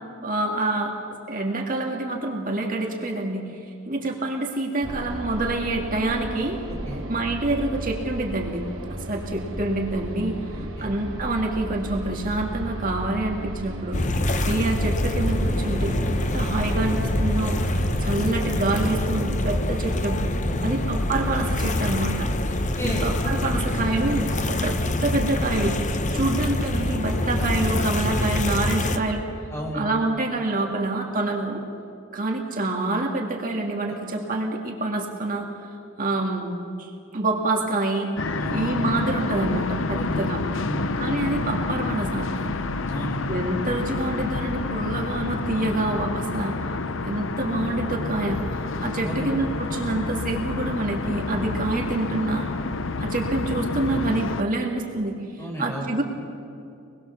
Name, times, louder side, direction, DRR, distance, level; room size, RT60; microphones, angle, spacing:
voice 1, 0.2-0.9 1.3-6.6 7.1-8.7 9.1-14.0 14.5-20.2 20.6-22.3 22.8-29.3 29.7-31.6 32.1-35.5 36.0-38.1 38.5-40.4 41.0-42.4 43.3-46.7 47.0-52.5 53.0-56.0, right 2 dB, 45° right, 1 dB, 2.1 m, -27 dB
sound 1, 4.8-18.5, right 1 dB, 85° right, 3.4 m, -34 dB
voice 2, 6.7-7.0 10.5-10.9 14.3-14.4 18.2-18.3 20.5-20.8 22.8-23.1 26.1-26.4 29.5-29.9 33.8-33.9 38.4-38.7 39.9-40.3 40.6-41.0 42.9-43.3 49.0-49.3 55.4-55.9, equal, 15° left, -1 dB, 5.0 m, -33 dB
sound 2, 13.9-29.0, left 1 dB, 40° left, 1.1 m, -25 dB
sound 3, 38.2-54.4, left 3 dB, 70° left, 0.8 m, -28 dB
26.0 x 20.5 x 7.1 m, 2.6 s
head